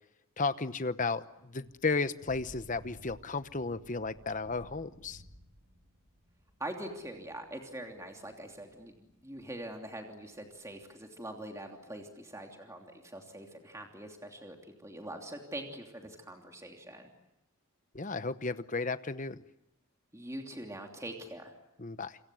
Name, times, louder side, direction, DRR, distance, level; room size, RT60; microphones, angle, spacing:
voice 1, 0.4-5.2 17.9-19.4 21.8-22.2, left 3 dB, 35° left, 13 dB, 0.9 m, -34 dB
Thunder / Rain, 1.3-10.8, equal, 65° right, 6.7 m, -58 dB
voice 2, 6.6-14.6 14.8-17.1 20.1-21.5, right 1 dB, 15° right, 2 dB, 3.0 m, -43 dB
28.0 x 25.5 x 7.7 m, 0.85 s
head